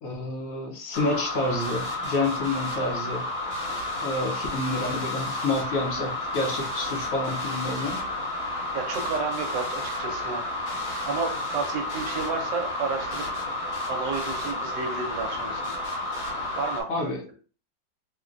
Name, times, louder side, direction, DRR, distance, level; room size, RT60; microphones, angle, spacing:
voice 1, 0.0-3.2 4.0-8.0 16.9-17.2, left 2 dB, 60° left, 0 dB, 1.0 m, -29 dB
sound 1, 0.9-16.8, left 2 dB, 85° left, 1.9 m, -31 dB
voice 2, 8.7-10.5 11.0-13.2 13.6-15.8 16.6-17.1, right 4 dB, 75° right, 4 dB, 1.2 m, -31 dB
3.7 x 2.2 x 2.5 m, 0.40 s
omnidirectional pair, 2.0 m